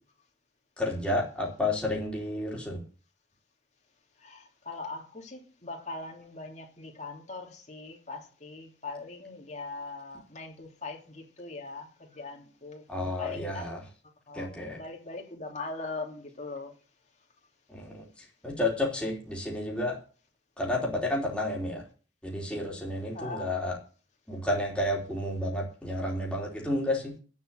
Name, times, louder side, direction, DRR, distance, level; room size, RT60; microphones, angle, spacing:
voice 1, 0.8-2.8 12.9-13.8 14.3-14.8 17.7-18.0 18.4-20.0 20.6-21.8 22.2-23.8 24.3-27.1, left 1 dB, 5° left, 3.4 m, -31 dB
voice 2, 4.2-13.7 14.3-16.7 23.1-23.5, left 3 dB, 40° left, 3.0 m, -41 dB
9.3 x 7.4 x 9.0 m
head